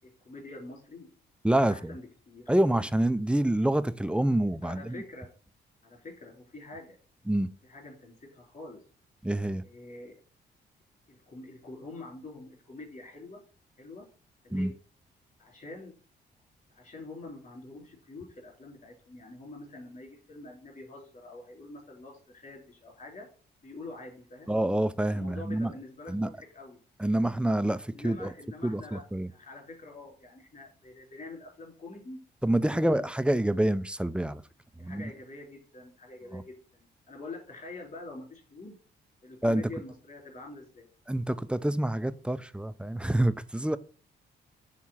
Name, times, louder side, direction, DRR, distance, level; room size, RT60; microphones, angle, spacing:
voice 1, 0.0-1.1 1.5-2.5 4.6-5.3 5.8-7.0 7.6-8.8 9.6-10.1 11.1-13.4 13.8-14.1 14.4-14.7 15.4-15.9 16.7-23.3 23.6-24.5 25.1-26.8 27.9-29.0 29.3-32.2 32.7-33.0 34.8-38.7 39.2-40.9, left 2 dB, 45° left, 3.9 m, -45 dB
voice 2, 1.4-2.0 2.5-5.0 7.3-7.5 9.2-9.6 14.5-14.7 24.5-25.7 26.1-26.3 27.0-28.3 28.6-29.3 32.4-34.4 34.8-35.1 36.3-36.4 39.4-39.6 41.1-43.8, right 1 dB, 5° right, 0.4 m, -27 dB
6.3 x 3.6 x 5.7 m
cardioid pair, 75°, 19 cm